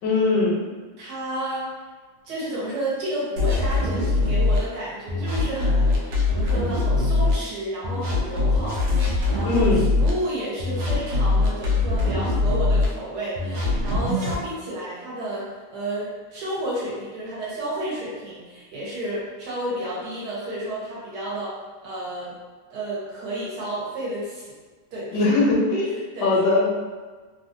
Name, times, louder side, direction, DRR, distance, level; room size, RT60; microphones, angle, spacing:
voice 1, 0.0-0.6 9.4-9.8 25.1-25.9 26.2-26.7, left 3 dB, 75° left, -3 dB, 1.2 m, -20 dB
voice 2, 1.0-1.6 2.2-21.5 21.8-22.4 22.7-24.5 24.9-25.2 26.1-26.4, right 1 dB, 70° right, -7 dB, 1.5 m, -31 dB
sound 1, 3.4-4.6 5.1-7.3 7.8-10.1 10.6-12.9 13.4-14.4, left 3 dB, 90° right, 1.3 m, -22 dB
3.3 x 2.3 x 2.5 m, 1.4 s
omnidirectional pair, 1.8 m